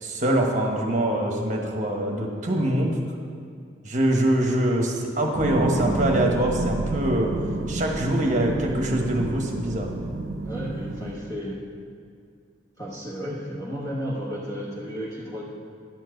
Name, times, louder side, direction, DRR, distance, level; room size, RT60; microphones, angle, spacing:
voice 1, 0.0-3.0 3.8-7.3 7.7-9.9, right 1 dB, 40° right, 1 dB, 1.2 m, -24 dB
sound 1, 5.3-11.1, right 2 dB, 85° right, 0.6 m, -30 dB
voice 2, 10.4-11.6 12.8-15.5, equal, 15° left, -6 dB, 1.0 m, -33 dB
11.0 x 4.5 x 7.8 m, 2.2 s
head